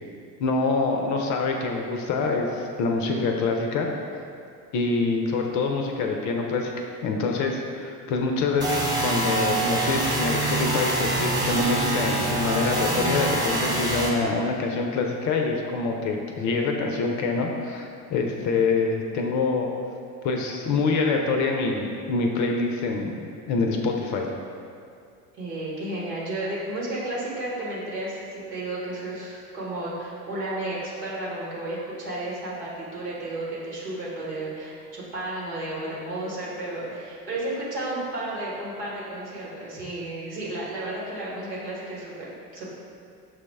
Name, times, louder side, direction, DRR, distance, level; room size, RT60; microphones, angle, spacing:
voice 1, 0.4-3.9 4.7-19.7 20.2-23.2 23.5-24.3, left 3 dB, 40° left, 2 dB, 0.5 m, -25 dB
sound 1, 8.6-14.1, right 2 dB, 10° right, 0.6 m, -25 dB
voice 2, 25.3-42.7, right 1 dB, 80° right, -7 dB, 1.3 m, -33 dB
6.0 x 2.0 x 3.4 m, 2.4 s
figure-of-eight pair, 70°, 48 cm